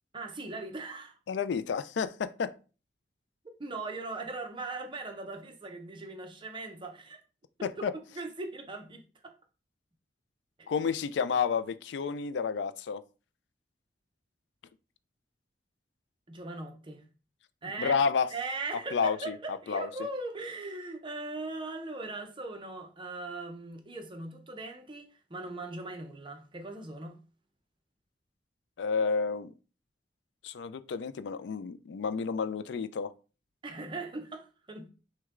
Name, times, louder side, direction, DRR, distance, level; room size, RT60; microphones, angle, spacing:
voice 1, 0.1-1.1 3.6-7.2 7.6-7.9 8.1-9.3 10.6-10.7 16.3-17.1 17.6-18.0 18.3-27.2 33.6-34.9, right 3 dB, 30° right, 0.7 m, -39 dB
voice 2, 1.3-2.5 7.6-7.9 10.7-13.0 17.8-18.3 18.9-19.4 19.7-19.9 28.8-29.5 30.4-33.1, left 5 dB, 75° left, 0.4 m, -30 dB
6.0 x 2.2 x 3.7 m
head